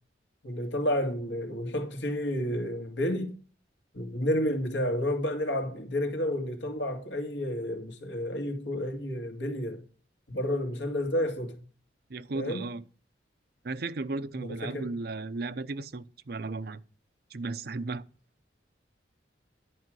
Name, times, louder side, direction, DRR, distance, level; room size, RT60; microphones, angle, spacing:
voice 1, 0.4-3.3 3.9-9.8 10.3-11.6 12.3-12.6 14.3-14.9, left 1 dB, 75° left, 2.2 m, -30 dB
voice 2, 12.1-12.8 13.6-16.8 17.3-18.0, right 3 dB, 55° right, 0.6 m, -35 dB
11.0 x 5.0 x 7.6 m
head